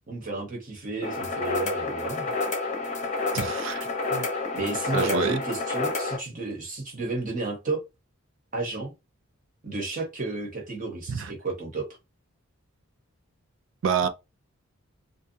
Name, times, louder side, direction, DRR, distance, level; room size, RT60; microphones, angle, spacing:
voice 1, 0.1-2.2 4.5-7.8 8.5-8.9 9.6-11.9, right 3 dB, 35° right, 0.9 m, -32 dB
sound 1, 1.0-6.2, left 3 dB, 30° left, 0.7 m, -29 dB
voice 2, 3.3-4.3 4.9-5.4 11.1-11.3 13.8-14.1, right 6 dB, 55° right, 0.3 m, -28 dB
2.5 x 2.2 x 2.6 m
head